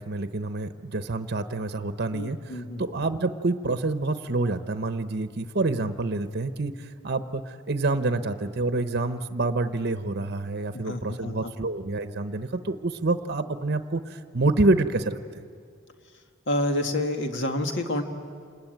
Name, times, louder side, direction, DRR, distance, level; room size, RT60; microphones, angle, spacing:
voice 1, 0.0-15.2, right 2 dB, 55° right, 10 dB, 0.9 m, -27 dB
voice 2, 2.1-2.9 10.7-11.5 16.5-18.0, left 1 dB, 60° left, 5 dB, 2.0 m, -28 dB
28.5 x 20.5 x 9.2 m, 2.1 s
head